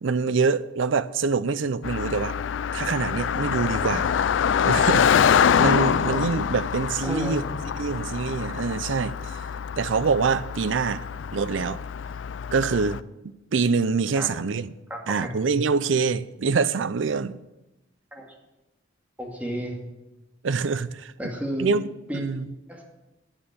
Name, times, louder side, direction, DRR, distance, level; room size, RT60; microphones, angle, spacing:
voice 1, 0.0-2.4 2.7-4.1 4.6-5.1 5.6-7.4 7.8-9.4 9.8-11.0 11.3-11.8 12.5-13.0 13.5-14.7 15.1-17.4 20.4-21.3 21.6-21.9 22.1-22.5, right 5 dB, 80° right, 0.5 m, -25 dB
Car passing by, 1.8-13.0, left 7 dB, 75° left, 0.4 m, -25 dB
voice 2, 7.0-7.4 14.2-14.3 14.9-15.3 18.1-18.3 19.2-19.8 21.2-21.7 22.1-22.2 22.7-22.8, equal, 10° right, 2.1 m, -31 dB
8.9 x 8.9 x 7.3 m
head